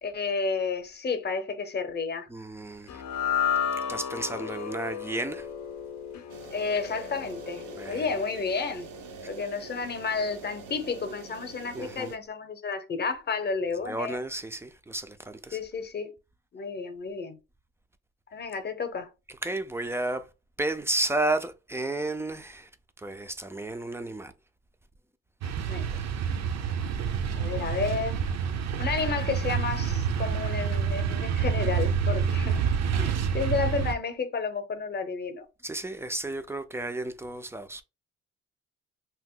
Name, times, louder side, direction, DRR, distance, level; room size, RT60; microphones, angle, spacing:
voice 1, 0.0-2.3 6.5-8.9 9.3-14.2 15.5-16.1 16.5-17.4 18.3-19.1 25.6-25.9 27.3-28.2 28.8-32.6 33.0-35.5, left 5 dB, 35° left, 0.8 m, -31 dB
voice 2, 2.3-3.0 3.9-5.5 7.8-8.1 11.7-12.1 13.9-15.6 19.4-20.3 20.6-22.7 23.0-24.3 25.9-26.0 35.6-37.8, right 2 dB, 10° right, 0.4 m, -32 dB
sound 1, 2.9-9.3, left 8 dB, 65° left, 0.6 m, -33 dB
sound 2, 6.3-12.2, right 5 dB, 90° right, 0.8 m, -45 dB
sound 3, 25.4-33.9, right 7 dB, 60° right, 0.5 m, -28 dB
2.8 x 2.1 x 3.6 m
cardioid pair, 90°, 30 cm